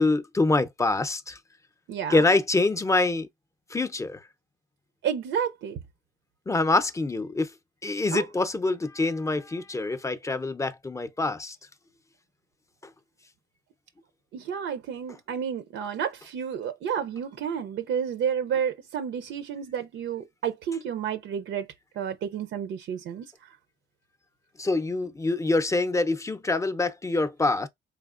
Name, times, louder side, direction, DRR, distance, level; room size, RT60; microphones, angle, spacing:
voice 1, 0.0-1.4 2.1-3.3 3.7-4.2 6.5-7.5 7.8-11.6 24.6-27.7, left 2 dB, 15° left, 0.6 m, -25 dB
voice 2, 1.9-2.3 5.0-5.8 8.1-8.2 14.3-21.7 22.0-23.3, right 8 dB, 75° right, 0.6 m, -30 dB
4.2 x 3.3 x 2.4 m
cardioid pair, 90°, 20 cm